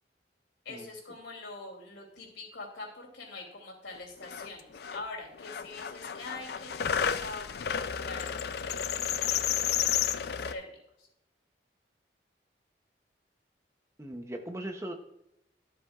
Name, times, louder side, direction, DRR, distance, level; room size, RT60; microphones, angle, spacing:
voice 1, 0.6-11.1, left 2 dB, 85° left, 0 dB, 2.8 m, -44 dB
sound 1, 3.9-4.0 4.2-5.0 5.4-10.5, left 8 dB, 60° left, 0.4 m, -32 dB
voice 2, 14.0-14.9, right 1 dB, 15° right, 4 dB, 0.7 m, -38 dB
12.5 x 7.6 x 2.4 m, 0.82 s
head